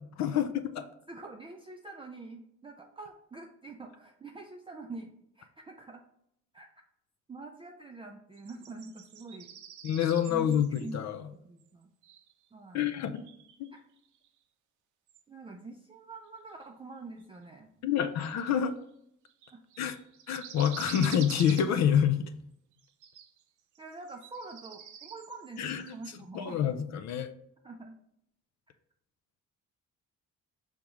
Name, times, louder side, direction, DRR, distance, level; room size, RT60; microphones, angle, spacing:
voice 1, 0.2-0.8 9.8-10.7 10.9-11.2 12.7-13.2 13.6-13.7 17.8-18.8 19.8-20.0 20.3-22.3 25.6-26.0 26.3-27.3, left 9 dB, 65° left, 10 dB, 0.5 m, -27 dB
voice 2, 1.1-6.0 6.5-6.7 7.3-9.5 10.3-11.0 11.3-11.9 12.5-12.9 15.3-17.7 19.5-19.6 23.8-26.6 27.6-28.0 28.7-28.8, right 3 dB, 20° right, 2 dB, 0.4 m, -45 dB
sound 1, 8.3-10.9 11.6-11.7 12.0-12.5 13.1-14.4 15.1-15.2 16.6-16.7 17.2-17.3 18.2-18.8 19.3-22.2 22.7-23.4 23.8-26.2, right 9 dB, 75° right, 0.5 m, -48 dB
4.8 x 3.6 x 3.0 m, 0.75 s
cardioid pair, 90°, 30 cm